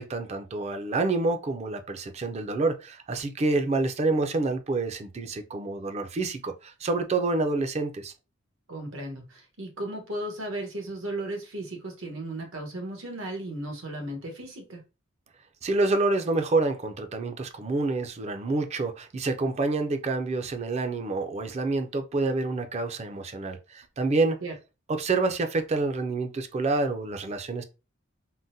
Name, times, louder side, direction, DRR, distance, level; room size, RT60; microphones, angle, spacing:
voice 1, 0.0-8.1 15.6-24.4 24.9-27.6, right 3 dB, 35° right, 0.4 m, -27 dB
voice 2, 8.7-14.8 24.4-24.5, right 1 dB, 90° right, 1.1 m, -35 dB
3.7 x 2.1 x 2.6 m
head